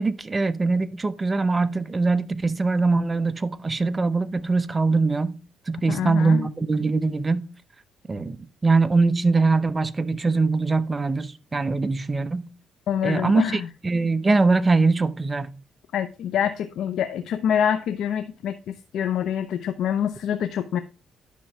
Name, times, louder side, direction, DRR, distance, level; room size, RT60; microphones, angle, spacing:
voice 1, 0.0-5.4 5.7-7.5 8.1-8.4 8.6-12.5 13.0-15.5, right 3 dB, 25° right, 0.8 m, -22 dB
voice 2, 5.9-6.5 12.9-13.7 15.9-18.5 18.9-20.8, left 9 dB, 75° left, 0.7 m, -25 dB
10.5 x 6.2 x 3.4 m
cardioid pair, 90°, 0 cm